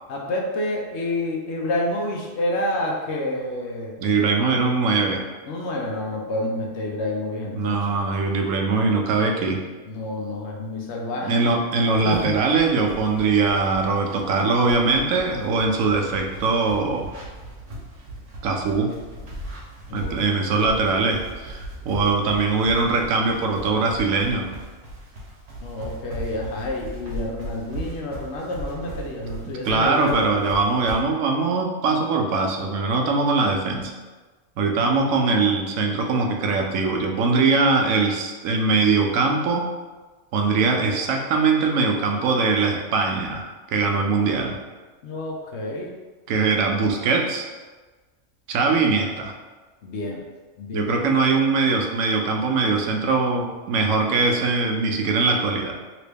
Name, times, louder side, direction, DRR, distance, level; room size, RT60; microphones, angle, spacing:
voice 1, 0.1-4.0 5.5-8.0 9.9-11.4 12.0-12.3 19.9-20.4 25.6-30.3 45.0-45.9 46.7-46.8 49.8-50.2 50.6-50.9, left 1 dB, 65° left, -1 dB, 0.8 m, -29 dB
voice 2, 4.0-5.2 7.5-9.6 11.2-17.1 18.4-18.9 19.9-24.5 29.6-33.9 34.6-39.7 40.3-44.6 46.3-47.5 48.5-49.3 50.7-55.8, right 4 dB, 85° right, 1 dB, 1.0 m, -21 dB
sound 1, 11.9-31.0, right 1 dB, 65° right, 1.1 m, -38 dB
3.0 x 2.9 x 3.3 m, 1.3 s
omnidirectional pair, 1.3 m